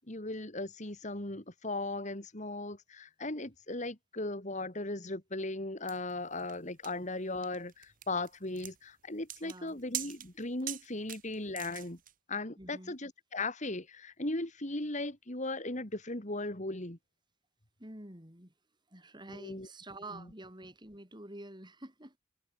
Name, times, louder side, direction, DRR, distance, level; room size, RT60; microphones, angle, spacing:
voice 1, 0.0-12.0 12.3-17.0 19.3-19.7, left 2 dB, 40° left, 3.0 m, -37 dB
sound 1, 5.9-12.1, right 12 dB, 45° right, 2.9 m, -43 dB
voice 2, 9.4-9.8 12.6-13.0 17.8-18.5 18.9-22.2, right 1 dB, 25° right, 5.8 m, -48 dB
head